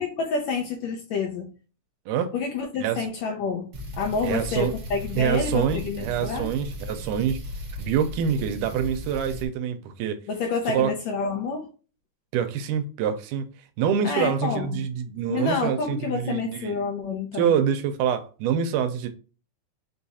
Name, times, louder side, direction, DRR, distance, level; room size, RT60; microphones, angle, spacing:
voice 1, 0.0-1.5 2.3-6.5 10.3-11.7 14.0-14.7 15.3-17.5, left 4 dB, 75° left, 1.7 m, -28 dB
sound 1, 3.7-9.5, left 1 dB, 65° right, 1.1 m, -36 dB
voice 2, 4.2-4.7 5.2-7.4 7.8-10.2 10.7-10.9 12.3-13.4 13.8-16.8 17.3-19.1, right 8 dB, 85° right, 2.1 m, -25 dB
5.3 x 2.4 x 4.0 m
omnidirectional pair, 3.7 m